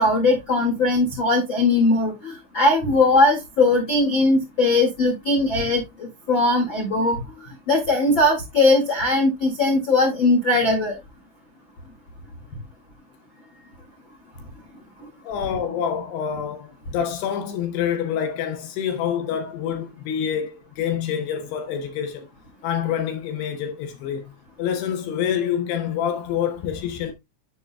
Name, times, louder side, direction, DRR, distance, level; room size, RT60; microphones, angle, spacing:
voice 1, 0.0-7.2 7.7-10.9, left 2 dB, 60° left, 1.2 m, -19 dB
voice 2, 15.2-22.3 22.6-24.2 24.6-27.1, left 8 dB, 75° left, 2.5 m, -27 dB
9.7 x 7.2 x 2.2 m
omnidirectional pair, 5.7 m